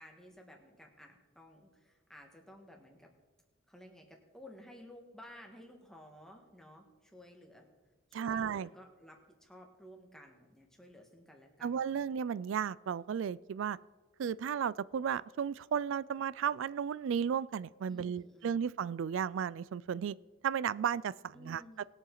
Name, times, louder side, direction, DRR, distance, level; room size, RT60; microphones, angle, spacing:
voice 1, 0.0-3.1 3.7-7.6 8.1-12.1 17.9-18.6 21.3-21.8, equal, ahead, 1 dB, 1.5 m, -55 dB
voice 2, 8.1-8.7 11.6-13.8 14.2-20.2 20.4-21.8, right 7 dB, 70° right, 20 dB, 0.3 m, -34 dB
20.5 x 7.3 x 3.9 m, 1.2 s
head